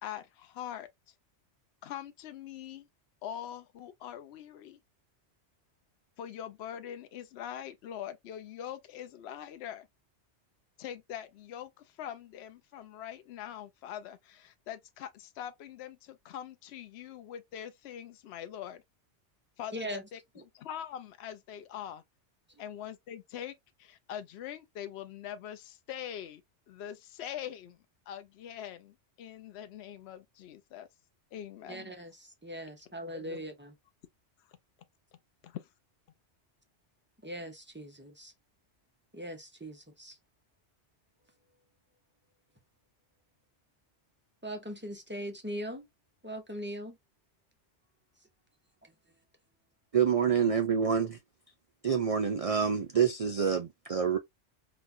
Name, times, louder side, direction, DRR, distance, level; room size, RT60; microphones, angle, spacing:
voice 1, 0.0-0.9 1.8-2.9 3.2-4.8 6.2-9.9 10.8-18.8 19.6-20.2 20.5-22.0 22.6-26.4 26.7-27.8 28.1-30.9 31.3-31.9 33.1-33.4 35.4-35.7, left 10 dB, 70° left, 0.8 m, -43 dB
voice 2, 19.7-20.0 31.7-33.7 37.2-38.3 39.1-40.2 44.4-45.9 46.2-47.0, equal, 10° right, 0.6 m, -40 dB
voice 3, 49.9-51.2 51.8-54.2, right 7 dB, 70° right, 0.3 m, -27 dB
4.1 x 2.3 x 2.6 m
omnidirectional pair, 1.2 m